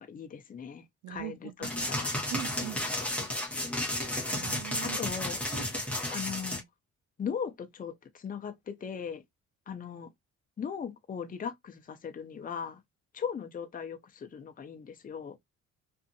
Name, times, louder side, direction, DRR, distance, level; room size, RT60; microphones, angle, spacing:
voice 1, 0.0-2.2 4.8-5.4 6.1-6.6 7.2-9.2 9.7-10.1 10.6-12.8 13.1-15.4, left 7 dB, 30° left, 0.6 m, -38 dB
voice 2, 1.0-1.9 2.3-2.8 4.3-5.0 5.5-5.7, right 13 dB, 80° right, 0.6 m, -41 dB
sound 1, 1.6-6.6, left 1 dB, 5° left, 0.9 m, -33 dB
2.6 x 2.5 x 2.6 m
cardioid pair, 90°, 30 cm